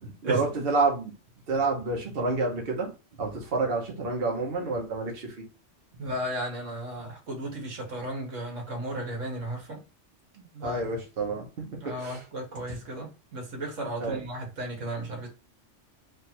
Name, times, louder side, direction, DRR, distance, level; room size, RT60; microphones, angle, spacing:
voice 1, 0.0-1.1 1.5-2.9 3.2-5.4 10.6-12.2 14.0-14.2, right 3 dB, 55° right, 1.2 m, -29 dB
voice 2, 6.0-9.8 10.3-10.8 11.6-15.3, right 1 dB, 80° right, 1.7 m, -35 dB
3.3 x 2.6 x 4.3 m
omnidirectional pair, 1.3 m